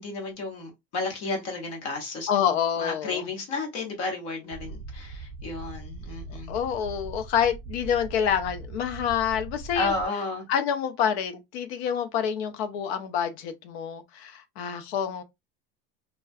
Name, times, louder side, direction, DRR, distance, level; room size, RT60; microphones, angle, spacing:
voice 1, 0.0-2.3 2.8-6.5 9.7-10.5, left 3 dB, 50° left, 1.0 m, -32 dB
voice 2, 2.3-3.2 6.5-9.9 10.5-15.2, left 8 dB, 85° left, 0.6 m, -27 dB
sound 1, 4.5-10.1, right 3 dB, 55° right, 0.4 m, -40 dB
2.3 x 2.2 x 2.5 m
supercardioid pair, 155°, 31 cm